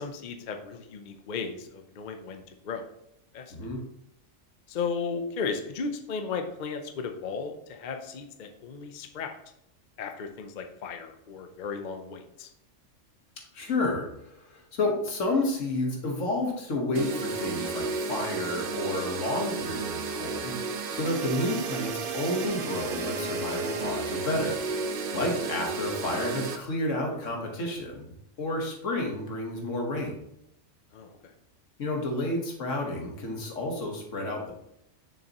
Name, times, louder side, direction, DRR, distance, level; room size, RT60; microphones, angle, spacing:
voice 1, 0.0-2.8 3.3-3.5 4.7-9.3 10.0-12.5 30.9-31.3, left 5 dB, 50° left, 6 dB, 0.7 m, -35 dB
voice 2, 3.5-3.8 13.5-24.6 25.1-30.1 31.8-34.5, left 2 dB, 80° left, 1 dB, 1.7 m, -30 dB
sound 1, 16.9-26.6, right 4 dB, 55° right, 0.7 m, -33 dB
6.6 x 6.5 x 2.9 m, 0.80 s
omnidirectional pair, 1.3 m